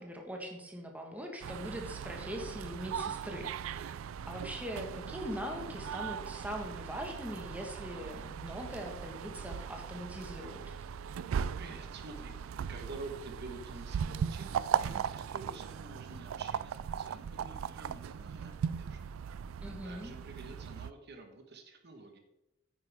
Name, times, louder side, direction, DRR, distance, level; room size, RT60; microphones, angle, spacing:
voice 1, 0.0-4.0 4.2-10.7 19.6-20.1, equal, 10° right, 1 dB, 1.4 m, -41 dB
sound 1, 1.4-20.9, right 7 dB, 75° right, 0.3 m, -38 dB
voice 2, 11.6-19.0 19.8-22.2, right 3 dB, 55° right, 5 dB, 1.3 m, -48 dB
9.3 x 9.2 x 3.5 m, 0.92 s
head